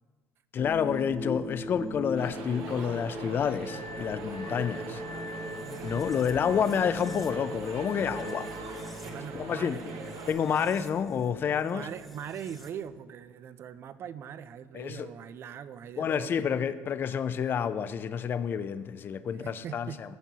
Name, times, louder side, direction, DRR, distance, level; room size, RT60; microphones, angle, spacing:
voice 1, 0.5-5.0 5.8-8.8 9.3-9.8 10.3-11.9 14.7-15.1 16.0-20.2, left 7 dB, 35° left, 14 dB, 0.4 m, -29 dB
sound 1, 0.6-12.9, left 1 dB, ahead, 0.9 m, -40 dB
sound 2, 2.1-10.3, right 5 dB, 90° right, 1.0 m, -43 dB
Glass, 3.7-8.7, left 3 dB, 60° left, 0.7 m, -46 dB
voice 2, 5.6-6.2 9.0-10.1 11.7-16.5 19.4-20.0, right 8 dB, 45° right, 15 dB, 0.4 m, -42 dB
14.5 x 6.0 x 2.8 m, 1.4 s
cardioid pair, 130°, 6 cm